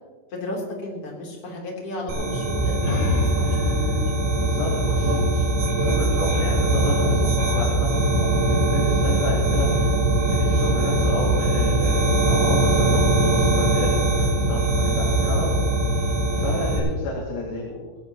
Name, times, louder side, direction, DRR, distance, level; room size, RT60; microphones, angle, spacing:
voice 1, 0.3-4.0 16.3-16.6, left 1 dB, 35° left, -2 dB, 3.8 m, -34 dB
sound 1, 2.1-16.8, right 2 dB, 75° right, 7.0 m, -21 dB
sound 2, 2.6-6.0, left 3 dB, 85° left, 4.5 m, -29 dB
voice 2, 4.3-15.6 15.9-17.8, left 2 dB, 60° left, -3 dB, 3.9 m, -31 dB
19.5 x 17.5 x 3.0 m, 1.4 s
omnidirectional pair, 5.1 m